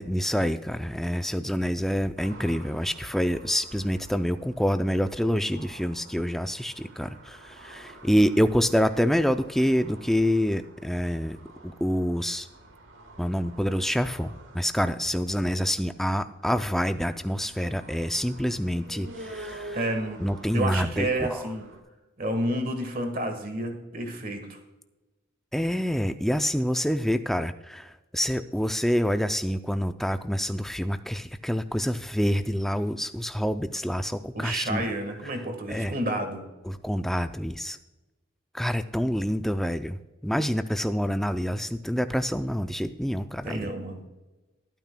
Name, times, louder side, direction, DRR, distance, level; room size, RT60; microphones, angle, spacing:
voice 1, 0.0-11.4 11.6-12.5 13.2-19.8 20.2-21.4 25.5-34.9 35.7-35.9 36.6-37.8 38.5-43.7, equal, ahead, 9 dB, 0.3 m, -27 dB
sound 1, 2.2-21.8, right 1 dB, 65° right, 1.4 m, -48 dB
voice 2, 19.7-20.2 20.5-21.7 22.2-24.6 34.3-36.5 43.4-44.0, right 1 dB, 40° right, 5 dB, 1.5 m, -30 dB
22.0 x 9.1 x 2.2 m, 1.1 s
head